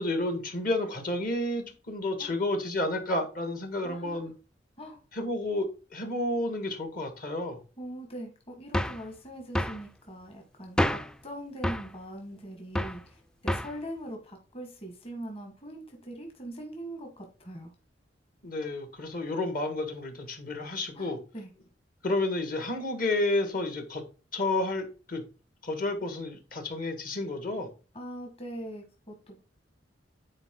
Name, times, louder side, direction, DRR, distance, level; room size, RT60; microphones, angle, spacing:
voice 1, 0.0-4.3 5.1-5.7 5.9-7.6 18.4-21.2 22.0-24.0 24.3-25.2 25.6-27.7, left 2 dB, 50° left, 1.7 m, -31 dB
voice 2, 3.8-4.3 4.8-5.0 7.8-17.7 20.9-21.5 27.9-29.4, right 1 dB, 30° left, 1.6 m, -42 dB
sound 1, 8.7-9.1 9.5-9.8 10.8-11.2 11.6-11.9 12.7-13.0 13.5-13.8, equal, 5° left, 0.3 m, -28 dB
9.7 x 4.4 x 3.7 m
head